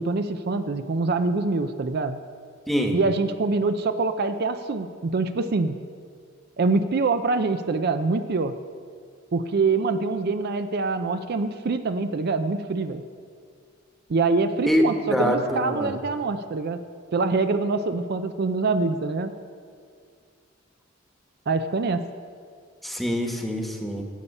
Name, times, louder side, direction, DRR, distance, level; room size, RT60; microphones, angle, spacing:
voice 1, 0.0-2.2 2.9-5.8 6.6-8.5 9.3-13.0 14.1-16.8 17.1-19.3 21.5-22.0, right 3 dB, 55° right, 9 dB, 0.5 m, -25 dB
voice 2, 15.1-15.9 22.8-24.0, equal, ahead, 2 dB, 1.2 m, -24 dB
17.0 x 7.0 x 5.4 m, 2.1 s
head